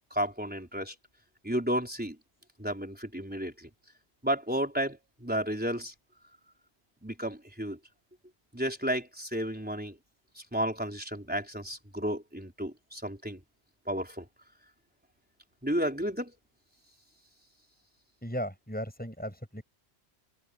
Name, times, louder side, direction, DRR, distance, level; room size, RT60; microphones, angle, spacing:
voice 1, 0.1-0.9 1.4-2.2 2.6-3.7 4.2-5.9 7.0-7.8 8.5-10.0 10.5-13.4 13.9-14.3 15.6-16.3, equal, 10° right, 4.2 m, -32 dB
voice 2, 18.2-19.6, equal, 10° left, 6.7 m, -36 dB
omnidirectional pair, 1.1 m